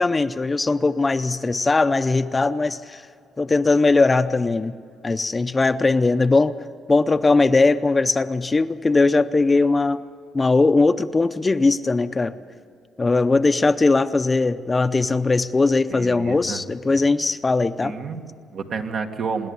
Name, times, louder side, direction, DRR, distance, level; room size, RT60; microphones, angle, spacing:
voice 1, 0.0-3.0 3.4-4.8 5.0-6.5 6.9-10.0 10.3-12.3 13.0-17.9, left 3 dB, 25° left, 11 dB, 0.6 m, -19 dB
voice 2, 15.9-16.6 17.8-19.5, right 5 dB, 65° right, 4 dB, 1.6 m, -30 dB
25.5 x 11.0 x 9.5 m, 2.4 s
cardioid pair, 90°, 0 cm